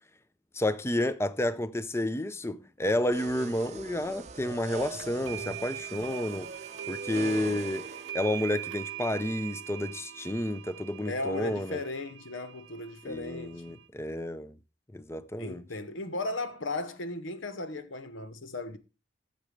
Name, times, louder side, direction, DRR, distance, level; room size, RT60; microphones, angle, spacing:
voice 1, 0.5-6.5 6.9-7.9 8.1-11.8 13.0-14.5 14.9-15.6, left 1 dB, 15° left, 0.5 m, -30 dB
sound 1, 3.1-8.1, right 4 dB, 35° right, 0.6 m, -42 dB
sound 2, 5.0-13.9, right 11 dB, 80° right, 0.8 m, -42 dB
voice 2, 11.1-13.8 15.4-18.8, left 2 dB, 85° left, 1.1 m, -36 dB
13.5 x 7.6 x 3.2 m
head